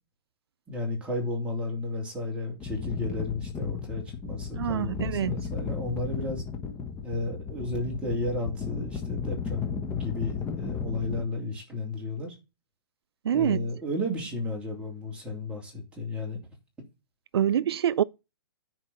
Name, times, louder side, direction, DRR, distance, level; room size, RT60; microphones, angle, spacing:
voice 1, 0.7-6.4 7.0-12.3 13.3-16.4, left 2 dB, 10° right, 2.9 m, -33 dB
sound 1, 2.6-11.2, left 6 dB, 15° left, 1.1 m, -34 dB
voice 2, 4.6-5.4 13.3-13.7 17.3-18.0, right 10 dB, 80° right, 0.4 m, -25 dB
10.0 x 4.7 x 5.8 m
hypercardioid pair, 150°, 13 cm